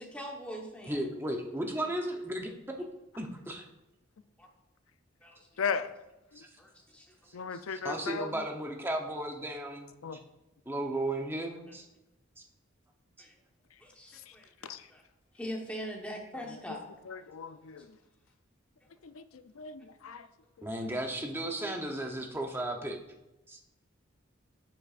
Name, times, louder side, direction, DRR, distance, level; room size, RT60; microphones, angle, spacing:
voice 1, 0.0-1.0 2.7-2.8 4.4-4.5 5.2-5.8 6.6-7.6 13.2-13.3 13.8-15.0 15.3-16.8, equal, 5° left, 1.2 m, -43 dB
voice 2, 0.9-2.9 3.2-3.6 6.3-6.5 7.3-7.4 7.7-9.9 10.7-11.9 12.4-12.5 20.6-23.0 23.5-23.6, right 1 dB, 10° right, 0.8 m, -35 dB
voice 3, 5.6-5.9 7.3-8.3 10.0-10.2 14.6-14.8 17.1-17.9 19.0-19.2 19.6-20.3 20.6-20.8, left 5 dB, 85° left, 0.5 m, -36 dB
11.5 x 7.7 x 2.5 m
head